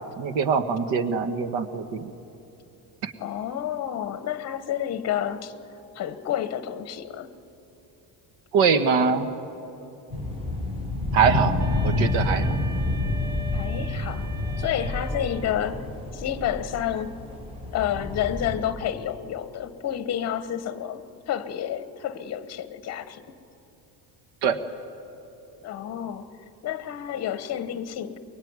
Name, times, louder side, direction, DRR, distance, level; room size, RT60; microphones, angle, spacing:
voice 1, 0.0-2.1 3.0-3.1 8.5-9.3 11.1-11.6 11.8-12.6 24.4-24.6, right 6 dB, 90° right, 10 dB, 1.6 m, -23 dB
voice 2, 3.2-5.5 5.9-7.3 13.5-14.3 14.6-15.8 16.1-17.1 17.7-23.2 25.6-26.3 26.6-28.2, left 10 dB, 35° left, 12 dB, 1.1 m, -30 dB
sound 1, 10.1-18.6, left 2 dB, 15° right, 5.8 m, -28 dB
Wind instrument woodwind instrument, 11.6-15.8, right 1 dB, 70° right, 5.8 m, -42 dB
24.0 x 22.0 x 9.6 m, 3.0 s
cardioid pair, 175°, 42 cm